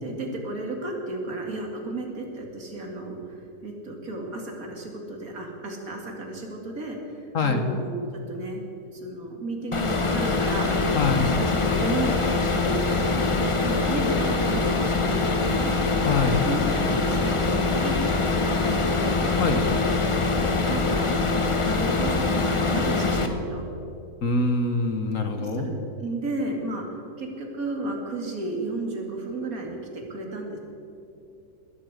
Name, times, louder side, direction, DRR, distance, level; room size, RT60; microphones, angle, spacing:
voice 1, 0.0-8.6 8.9-10.7 11.1-15.7 16.4-19.2 20.2-20.3 20.7-23.7 25.3-26.8 27.2-30.6, right 2 dB, 60° right, 1 dB, 2.7 m, -33 dB
voice 2, 7.3-7.7 10.9-11.2 16.1-16.4 19.4-19.7 24.2-25.7, left 3 dB, 55° left, 6 dB, 1.5 m, -24 dB
sound 1, 9.7-23.3, left 3 dB, 25° left, 0.9 m, -24 dB
20.5 x 8.6 x 8.1 m, 2.7 s
omnidirectional pair, 1.7 m